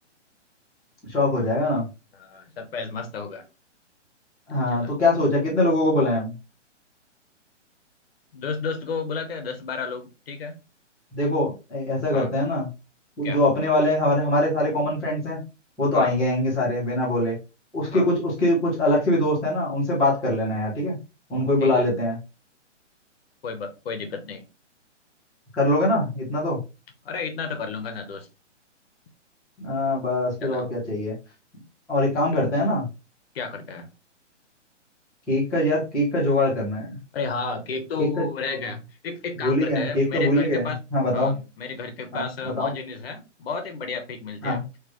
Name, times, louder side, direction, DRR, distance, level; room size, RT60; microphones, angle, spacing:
voice 1, 1.1-1.9 4.5-6.3 11.1-12.7 13.2-15.4 15.8-17.4 17.7-21.0 21.3-22.2 25.5-26.6 29.6-31.1 31.9-32.9 35.3-37.0 38.0-38.3 39.4-41.3 42.1-42.7 44.4-44.6, left 1 dB, ahead, -20 dB, 0.4 m, -23 dB
voice 2, 2.1-3.4 4.7-4.9 8.3-10.6 12.1-12.3 13.2-13.4 15.9-16.1 17.9-18.1 21.6-21.8 23.4-24.5 27.0-28.3 30.4-30.7 32.3-32.4 33.3-33.9 37.1-40.8 41.1-44.6, left 4 dB, 55° left, 7 dB, 1.0 m, -32 dB
3.9 x 3.1 x 3.0 m, 0.28 s
hypercardioid pair, 155°, 37 cm